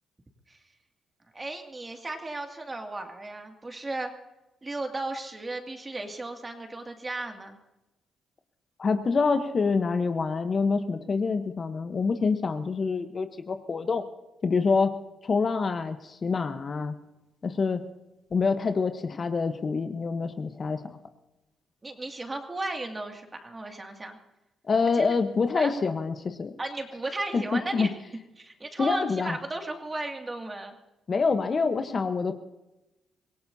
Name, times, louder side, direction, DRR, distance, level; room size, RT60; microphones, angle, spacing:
voice 1, 1.3-4.1 4.6-7.6 21.8-24.2 24.9-25.1 25.5-25.7 26.6-27.9 28.4-30.8, right 2 dB, 25° right, 3 dB, 2.3 m, -35 dB
voice 2, 8.8-14.0 14.4-15.0 15.2-16.9 17.4-17.9 18.3-21.0 24.6-26.5 27.3-27.9 28.8-29.4 31.1-32.3, left 4 dB, 40° left, 8 dB, 1.0 m, -26 dB
25.0 x 17.5 x 2.8 m, 1.0 s
cardioid pair, 90°, 0 cm